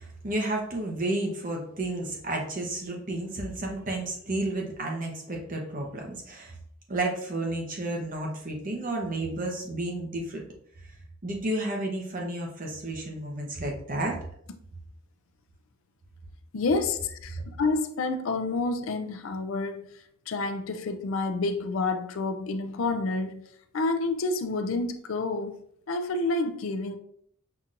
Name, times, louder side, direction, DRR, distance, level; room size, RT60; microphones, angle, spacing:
voice 1, 0.0-6.5 6.9-10.4 11.2-14.2 17.3-17.4, right 2 dB, 40° right, 0.9 m, -31 dB
voice 2, 16.5-20.0 20.3-23.4 23.7-25.6 25.9-27.0, left 3 dB, 65° left, 0.4 m, -29 dB
5.7 x 2.9 x 2.5 m
head